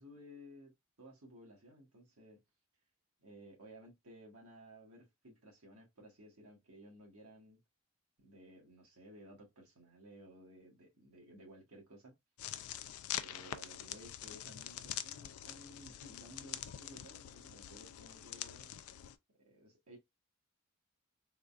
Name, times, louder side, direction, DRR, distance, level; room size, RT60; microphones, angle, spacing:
voice 1, 0.0-2.4 3.2-7.6 8.2-12.2 13.2-18.7 19.3-20.0, equal, 85° right, 1.5 m, -56 dB
sound 1, 12.4-19.2, left 11 dB, 80° left, 0.4 m, -45 dB
3.7 x 2.3 x 2.5 m
head